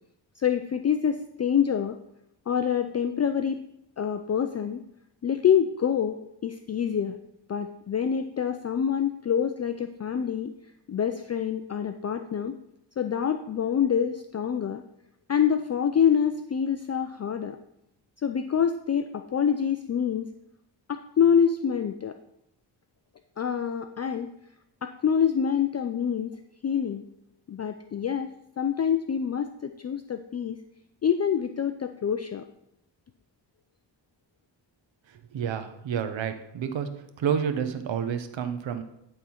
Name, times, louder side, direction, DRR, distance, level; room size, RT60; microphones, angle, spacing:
voice 1, 0.4-2.0 2.5-3.6 4.0-4.8 5.2-7.2 7.5-10.5 10.9-12.6 13.0-14.8 15.3-17.6 18.2-20.3 20.9-22.2 23.4-24.3 24.8-26.3 26.6-27.0 27.5-28.3 28.6-30.6 31.0-32.4, left 8 dB, 35° left, 8 dB, 0.4 m, -26 dB
voice 2, 35.3-36.9 37.2-38.8, right 7 dB, 75° right, 9 dB, 1.0 m, -29 dB
11.0 x 3.8 x 5.8 m, 0.81 s
wide cardioid pair, 105°, 46 cm